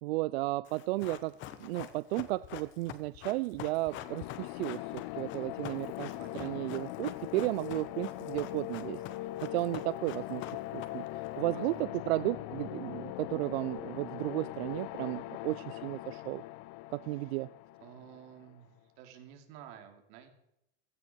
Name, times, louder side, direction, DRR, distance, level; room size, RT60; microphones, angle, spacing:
voice 1, 0.0-1.3 1.6-9.0 9.4-10.4 10.7-11.0 11.4-16.4 16.9-17.5, right 19 dB, 85° right, 18 dB, 0.5 m, -34 dB
Run, 0.6-11.3 11.5-11.6, left 11 dB, 40° left, 1.3 m, -45 dB
sound 1, 3.9-18.6, left 16 dB, 55° left, 0.8 m, -41 dB
voice 2, 6.2-6.7 11.5-11.9 12.3-12.4 17.2-17.3 17.8-18.7 19.0-20.3, right 10 dB, 55° right, 5 dB, 3.3 m, -52 dB
16.5 x 16.5 x 4.6 m, 0.79 s
supercardioid pair, 160°, 30 cm